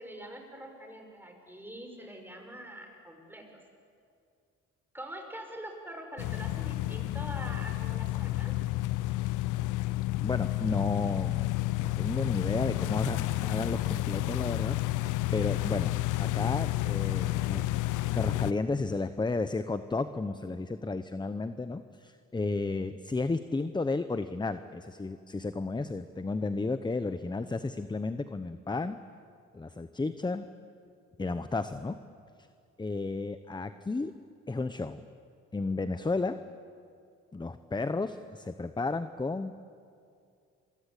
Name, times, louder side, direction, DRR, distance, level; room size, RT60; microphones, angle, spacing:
voice 1, 0.0-3.4 4.9-8.5, right 1 dB, 5° right, 3 dB, 5.7 m, -44 dB
sound 1, 6.2-18.5, left 17 dB, 85° left, 0.7 m, -30 dB
voice 2, 10.2-11.5 11.8-15.9 16.2-17.7 18.1-29.0 29.5-30.5 31.2-32.0 32.8-34.1 34.5-35.0 35.5-36.4 37.3-39.5, left 3 dB, 15° left, 11 dB, 0.9 m, -33 dB
28.0 x 23.5 x 8.4 m, 2.4 s
cardioid pair, 90°, 30 cm